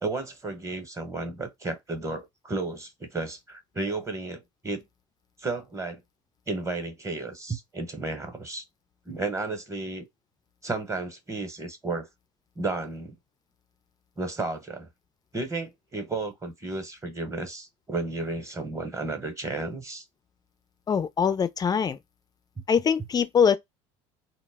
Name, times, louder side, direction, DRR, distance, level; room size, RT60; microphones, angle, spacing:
voice 1, 0.0-4.8 5.4-6.0 6.5-8.6 9.1-10.0 10.6-12.1 12.6-13.1 14.2-14.9 15.3-20.0, right 3 dB, 20° right, 0.8 m, -33 dB
voice 2, 20.9-22.0 22.7-23.6, left 7 dB, 25° left, 0.4 m, -23 dB
2.1 x 2.0 x 3.3 m
supercardioid pair, 85°, 16 cm